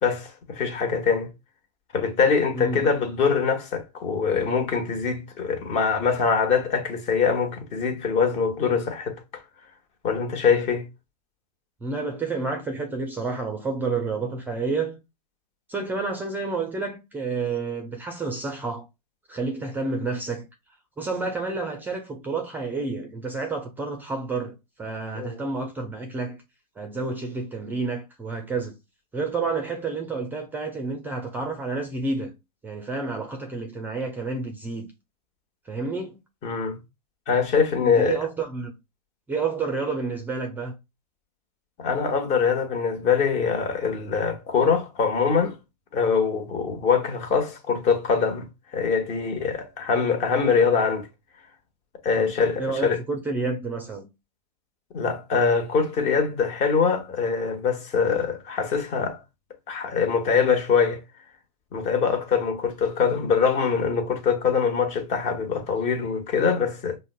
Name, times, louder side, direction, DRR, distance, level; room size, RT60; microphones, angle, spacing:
voice 1, 0.0-1.3 1.9-9.2 10.0-10.9 25.1-25.4 36.4-36.8 37.3-38.2 41.8-45.6 45.9-48.5 48.7-51.1 52.0-53.0 54.9-59.2 59.7-61.0 61.7-67.0, left 6 dB, 35° left, 1.0 m, -23 dB
voice 2, 2.5-2.9 11.8-15.0 15.7-18.9 19.3-20.4 21.0-26.4 26.8-28.7 29.1-32.3 32.6-34.9 35.7-36.2 37.8-38.7 39.3-40.7 52.2-52.3 52.6-54.1, right 3 dB, 10° right, 0.5 m, -29 dB
5.0 x 2.1 x 2.2 m
hypercardioid pair, 125°, 20 cm